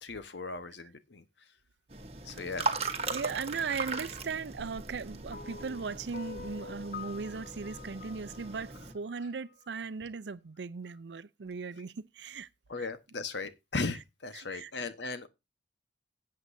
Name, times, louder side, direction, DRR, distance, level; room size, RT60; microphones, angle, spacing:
voice 1, 0.0-1.2 2.2-2.7 12.7-15.3, left 3 dB, 85° left, 1.1 m, -37 dB
sound 1, 1.9-8.9, right 3 dB, 35° right, 1.1 m, -38 dB
voice 2, 3.1-12.5 12.8-12.9 14.3-14.7, right 5 dB, 80° right, 0.5 m, -38 dB
sound 2, 5.3-9.7, left 6 dB, 50° left, 0.5 m, -47 dB
16.0 x 7.8 x 2.6 m
head